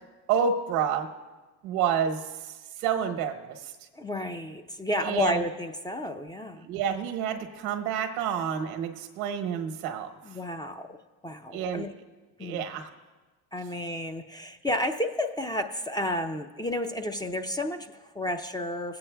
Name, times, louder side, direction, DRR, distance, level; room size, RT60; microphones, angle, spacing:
voice 1, 0.3-1.1 1.6-3.7 5.0-5.4 6.6-10.1 11.5-11.9 12.4-12.9, right 7 dB, 90° right, 5 dB, 1.1 m, -29 dB
voice 2, 3.9-6.7 10.2-11.0 11.2-11.9 12.4-12.6 13.5-19.0, left 1 dB, 10° left, 6 dB, 0.4 m, -31 dB
21.0 x 8.6 x 2.2 m, 1.2 s
supercardioid pair, 85°, 42 cm